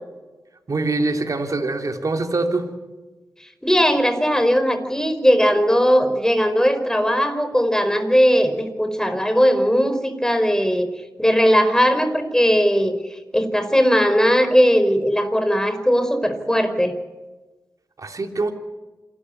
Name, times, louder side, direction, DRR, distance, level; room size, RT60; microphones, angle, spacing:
voice 1, 0.7-2.6 18.0-18.5, right 3 dB, 55° right, 4 dB, 3.3 m, -23 dB
voice 2, 3.6-10.9 11.2-16.9, equal, 10° left, 8 dB, 4.8 m, -18 dB
27.5 x 13.0 x 9.9 m, 1.2 s
cardioid pair, 45°, 7 cm